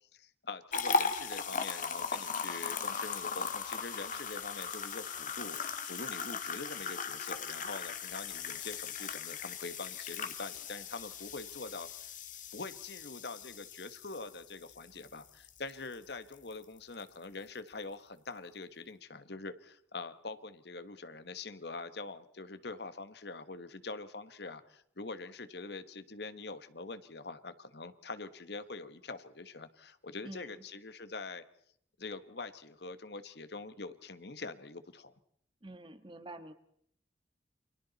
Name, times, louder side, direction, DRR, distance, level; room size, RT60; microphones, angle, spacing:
voice 1, 0.0-12.2 12.5-31.4 32.0-35.1, left 3 dB, 60° left, 12 dB, 1.4 m, -44 dB
sound 1, 0.7-15.9 16.3-16.5 17.0-17.1, left 5 dB, 45° left, 1.8 m, -38 dB
voice 2, 30.2-30.6 35.6-36.5, right 2 dB, 25° right, 10 dB, 1.5 m, -47 dB
29.5 x 26.0 x 4.1 m, 0.67 s
head